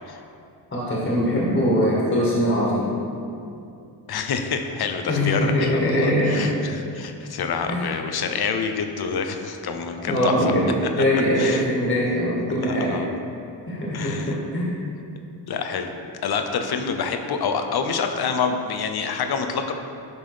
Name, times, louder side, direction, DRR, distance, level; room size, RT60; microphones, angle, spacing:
voice 1, 0.7-2.9 5.1-6.6 7.7-7.9 10.1-13.0 13.6-14.7, equal, 30° left, -5 dB, 1.8 m, -22 dB
voice 2, 4.1-10.5 11.0-11.1 11.4-11.6 12.6-13.1 13.9-14.3 15.5-15.9 16.2-19.7, left 5 dB, 55° left, 6 dB, 0.8 m, -27 dB
11.0 x 3.8 x 4.9 m, 2.6 s
cardioid pair, 95°, 44 cm